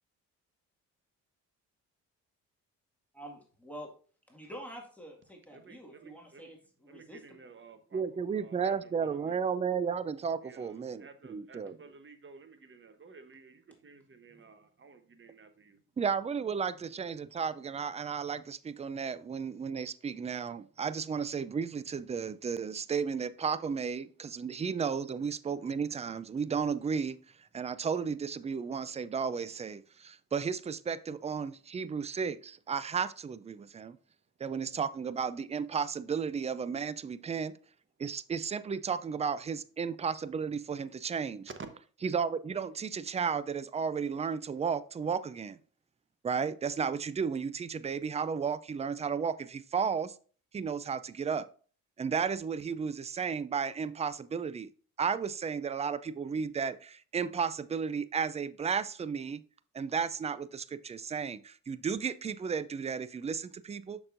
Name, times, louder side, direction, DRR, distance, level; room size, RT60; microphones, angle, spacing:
voice 1, 3.1-3.9 4.3-7.2 14.3-14.4, equal, 5° left, 1.9 m, -47 dB
voice 2, 5.5-6.5 6.9-9.4 10.4-15.8, right 4 dB, 35° right, 1.1 m, -54 dB
voice 3, 7.9-11.8 16.0-27.2 27.5-34.0 34.4-37.6 38.0-41.5 42.0-45.6 46.2-50.2 50.5-51.5 52.0-54.7 55.0-59.4 59.7-64.0, right 6 dB, 20° right, 0.4 m, -33 dB
6.5 x 6.0 x 2.6 m
supercardioid pair, 65°, 36 cm